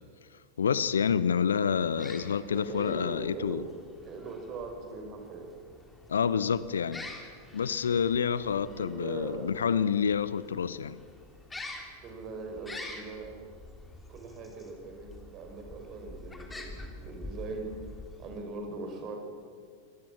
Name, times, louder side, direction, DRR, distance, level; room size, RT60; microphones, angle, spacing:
voice 1, 0.6-3.6 6.1-7.0 7.5-11.0, left 7 dB, 70° left, 0.7 m, -28 dB
sound 1, 1.9-18.6, left 2 dB, 10° left, 3.2 m, -47 dB
voice 2, 2.5-3.6 4.0-5.5 8.8-9.5 12.0-13.4 14.1-17.7 18.2-19.2, right 3 dB, 35° right, 5.3 m, -40 dB
25.0 x 17.5 x 7.4 m
figure-of-eight pair, 90°, 0 cm